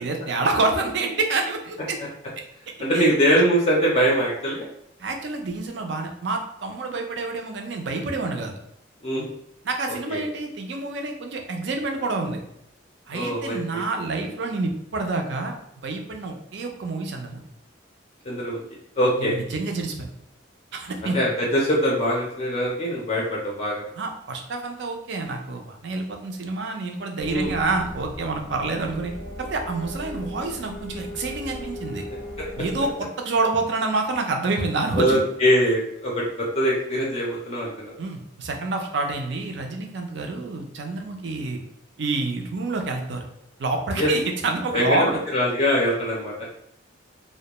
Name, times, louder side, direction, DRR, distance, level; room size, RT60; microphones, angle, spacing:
voice 1, 0.0-2.0 2.9-3.1 5.0-8.5 9.6-12.4 13.1-15.5 15.8-17.4 19.2-20.1 20.7-21.2 24.0-29.1 29.4-32.0 32.6-35.2 38.0-41.6 42.0-43.3 43.6-45.2, right 3 dB, 60° right, 3 dB, 0.4 m, -28 dB
voice 2, 2.8-4.7 9.0-9.3 10.1-10.2 13.1-13.8 18.3-18.6 19.0-19.3 21.0-23.8 27.3-27.6 34.9-36.2 36.5-37.9 44.0-44.1 44.7-45.0 45.3-46.3, equal, 30° left, -4 dB, 0.4 m, -22 dB
sound 1, 27.2-32.9, left 1 dB, 80° left, 0.5 m, -38 dB
2.2 x 2.1 x 2.9 m, 0.77 s
head